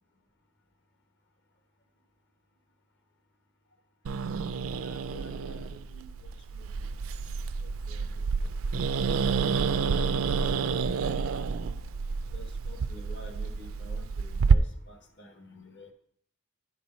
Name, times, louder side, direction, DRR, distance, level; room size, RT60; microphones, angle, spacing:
Growling, 4.0-14.5, right 5 dB, 70° right, 0.4 m, -29 dB
voice 1, 4.8-6.9 7.9-8.1 8.3-8.6 9.7-10.4 10.6-10.8 12.3-15.9, left 1 dB, 55° left, 4 dB, 1.2 m, -50 dB
10.5 x 4.6 x 4.2 m, 0.65 s
head